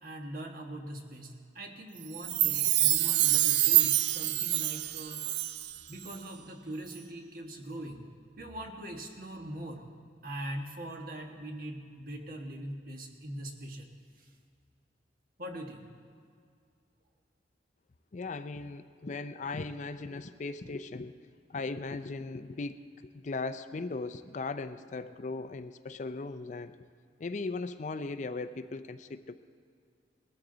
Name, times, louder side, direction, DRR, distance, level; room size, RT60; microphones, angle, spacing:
voice 1, 0.0-5.2 5.9-8.1 8.4-9.9 10.2-14.3 15.4-15.9, right 1 dB, 50° right, 3 dB, 1.4 m, -42 dB
Chime, 2.1-5.8 6.1-6.2, right 14 dB, 70° right, 0.4 m, -26 dB
voice 2, 18.1-21.2 21.5-22.8 23.1-26.8 27.2-29.3, left 3 dB, 40° left, 11 dB, 0.4 m, -38 dB
20.0 x 13.5 x 3.9 m, 2.3 s
head